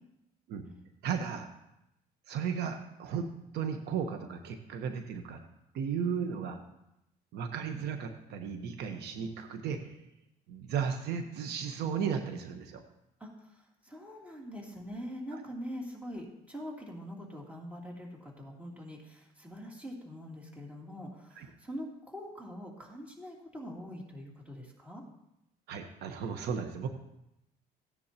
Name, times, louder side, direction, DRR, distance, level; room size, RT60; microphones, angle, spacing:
voice 1, 1.0-1.5 2.3-3.3 3.5-5.4 5.7-6.6 7.3-10.0 10.5-12.8 15.3-15.4 21.4-21.5 25.7-26.9, right 7 dB, 75° right, 6 dB, 1.1 m, -35 dB
voice 2, 13.2-13.5 13.8-25.0, equal, 10° right, -2 dB, 3.0 m, -43 dB
16.0 x 9.7 x 2.9 m, 0.86 s
cardioid pair, 110°, 17 cm